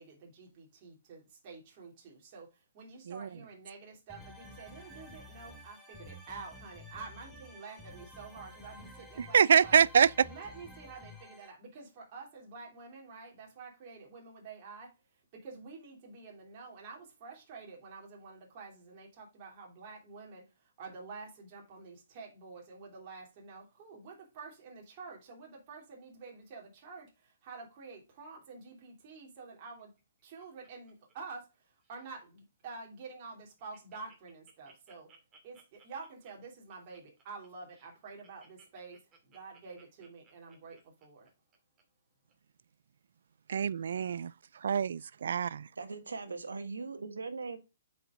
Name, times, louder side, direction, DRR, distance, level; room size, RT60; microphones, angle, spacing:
voice 1, 0.0-9.8 10.2-29.9 30.2-35.1 35.4-41.3, right 4 dB, 40° right, 2.8 m, -49 dB
sound 1, 4.1-11.5, left 1 dB, ahead, 1.8 m, -51 dB
voice 2, 9.2-10.1 43.5-44.3 44.6-45.7, right 7 dB, 70° right, 0.3 m, -25 dB
Laughter, 29.8-31.6 31.8-32.2 32.7-32.8 33.0-33.1 33.4-41.8 42.3-42.4, right 4 dB, 25° right, 2.2 m, -63 dB
voice 3, 45.8-47.6, right 4 dB, 85° right, 1.5 m, -40 dB
7.7 x 5.3 x 3.6 m
hypercardioid pair, 140°, 0 cm